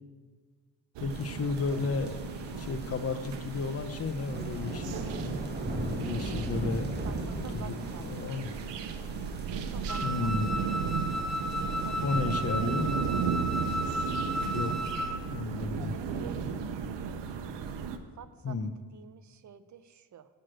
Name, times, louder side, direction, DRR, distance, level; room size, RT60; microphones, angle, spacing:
voice 1, 1.0-5.0 5.9-6.9 7.5-8.5 10.0-10.6 12.0-12.9 14.4-16.0 18.4-18.7, left 4 dB, 35° left, 9 dB, 0.7 m, -33 dB
sound 1, 1.0-18.0, right 6 dB, 85° right, 0.8 m, -35 dB
sound 2, 1.1-14.9, right 1 dB, 25° right, 1.3 m, -40 dB
voice 2, 7.0-8.0 9.7-10.3 11.8-13.0 14.7-14.9 15.9-16.3 16.8-17.3 18.2-18.6 18.9-20.3, right 9 dB, 45° right, 12 dB, 0.6 m, -50 dB
Wind instrument woodwind instrument, 9.9-15.2, equal, ahead, 0.5 m, -33 dB
6.5 x 6.4 x 7.5 m, 1.5 s
cardioid pair, 100°, 42 cm